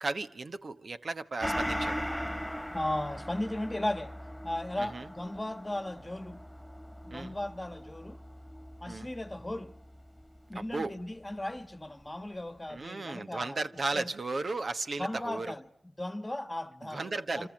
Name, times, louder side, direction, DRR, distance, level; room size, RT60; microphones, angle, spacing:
voice 1, 0.0-2.0 4.8-5.1 7.1-7.4 8.9-9.1 10.5-11.0 12.7-15.6 16.9-17.5, right 3 dB, 60° right, 1.2 m, -35 dB
Gong, 1.4-10.4 10.7-10.8, equal, ahead, 2.2 m, -39 dB
voice 2, 2.7-4.2 4.4-6.4 7.0-8.2 8.8-9.8 10.5-13.6 13.9-14.1 15.0-15.6 16.0-17.5, left 1 dB, 20° left, 1.4 m, -36 dB
29.5 x 26.5 x 7.5 m
wide cardioid pair, 75°, 0 cm